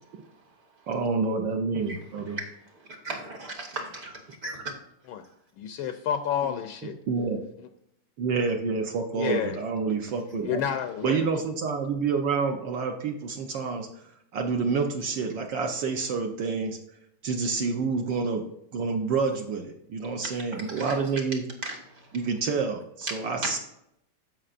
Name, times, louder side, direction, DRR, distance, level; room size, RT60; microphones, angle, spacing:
voice 1, 0.9-2.4 7.1-7.4 8.2-10.6 11.0-13.9 14.3-16.8 17.2-18.4 18.7-21.4 22.1-23.6, right 4 dB, 65° right, 3 dB, 1.4 m, -28 dB
voice 2, 1.9-2.5 3.0-4.5 20.2-20.3 20.7-21.0 21.6-22.1 23.1-23.6, right 2 dB, 50° right, 2 dB, 1.7 m, -36 dB
voice 3, 5.6-7.0 7.6-7.7 9.2-9.6 10.4-11.3, left 9 dB, 75° left, 8 dB, 1.3 m, -30 dB
15.5 x 5.5 x 2.5 m, 0.78 s
omnidirectional pair, 2.4 m